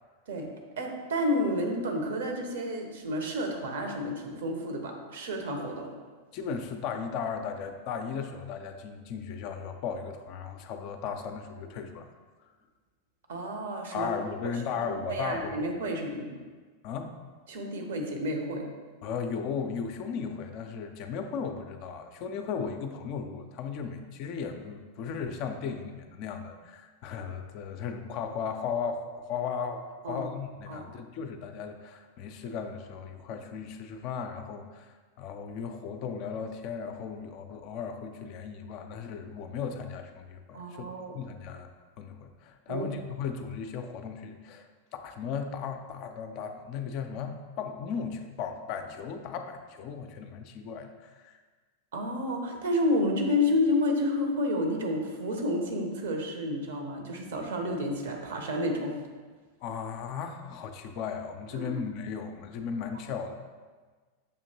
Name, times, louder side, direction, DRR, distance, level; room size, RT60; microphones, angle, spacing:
voice 1, 0.8-5.9 13.3-14.2 14.8-16.4 17.5-18.7 30.0-30.3 30.7-30.8 40.5-41.2 42.7-42.9 51.9-59.0 61.5-61.7, left 1 dB, 60° right, 3 dB, 0.7 m, -30 dB
voice 2, 6.3-12.1 13.9-15.5 16.8-17.1 19.0-40.9 41.1-41.7 42.0-51.4 59.6-63.3, left 6 dB, 45° left, 7 dB, 0.3 m, -36 dB
6.6 x 2.8 x 2.7 m, 1.4 s
figure-of-eight pair, 90°, 0 cm